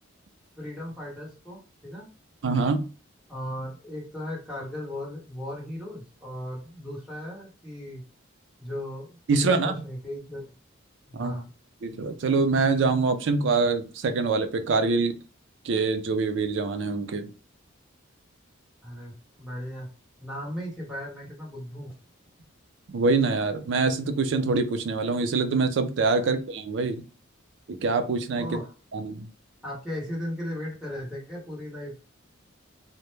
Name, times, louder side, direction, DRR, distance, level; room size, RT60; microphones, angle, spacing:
voice 1, 0.6-2.1 3.3-8.0 8.6-10.5 11.1-11.5 18.8-19.9 20.2-21.9 26.2-26.3 28.3-28.7 29.6-32.1, left 1 dB, ahead, -5 dB, 0.9 m, -37 dB
voice 2, 2.4-2.9 9.3-9.7 11.1-11.4 11.8-15.1 15.6-17.3 22.9-27.0 27.7-28.5 28.9-29.3, right 4 dB, 60° right, 8 dB, 0.4 m, -25 dB
2.1 x 2.0 x 3.0 m, 0.35 s
head